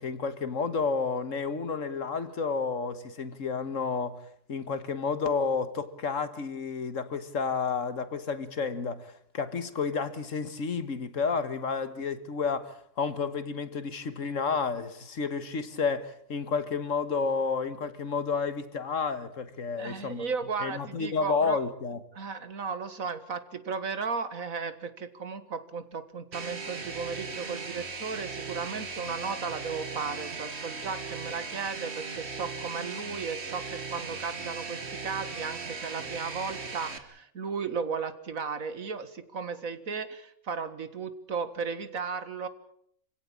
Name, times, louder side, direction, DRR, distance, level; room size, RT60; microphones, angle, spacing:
voice 1, 0.0-4.2 4.5-20.2 20.6-22.0, left 5 dB, 65° left, 1.8 m, -31 dB
voice 2, 19.8-21.6 22.1-42.5, right 5 dB, 80° right, 2.2 m, -35 dB
sound 1, 26.3-37.0, right 4 dB, 50° right, 2.1 m, -38 dB
27.0 x 17.0 x 8.7 m
omnidirectional pair, 1.4 m